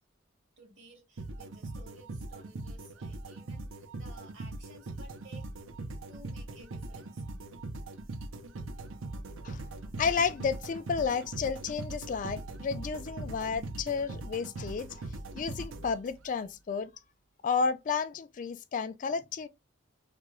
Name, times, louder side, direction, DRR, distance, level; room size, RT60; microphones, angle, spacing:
voice 1, 0.6-5.5 6.1-7.2, right 2 dB, 70° right, 2.0 m, -55 dB
sound 1, 1.2-16.4, right 2 dB, 90° right, 0.6 m, -41 dB
voice 2, 10.0-14.9 15.3-16.9 17.4-19.5, left 5 dB, 40° left, 0.3 m, -31 dB
3.6 x 2.3 x 2.9 m
head